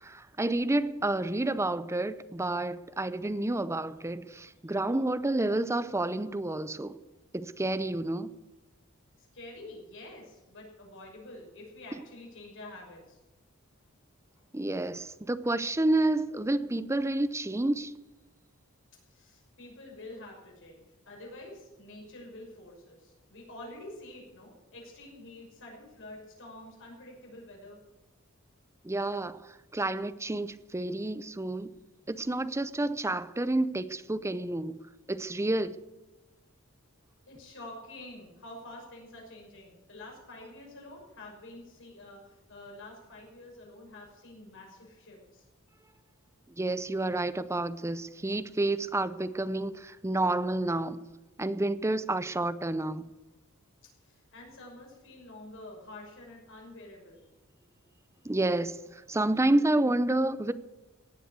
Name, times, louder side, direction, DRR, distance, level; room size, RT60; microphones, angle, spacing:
voice 1, 0.0-7.0 7.3-8.3 14.5-17.9 28.8-29.4 29.7-31.7 32.1-34.8 35.1-35.8 46.6-51.0 51.4-53.1 58.2-58.8 59.1-60.5, right 2 dB, 15° right, 0.6 m, -29 dB
voice 2, 9.2-13.2 19.0-27.8 37.3-45.5 54.0-57.2, left 2 dB, 65° left, 6.0 m, -48 dB
17.5 x 7.6 x 8.2 m
head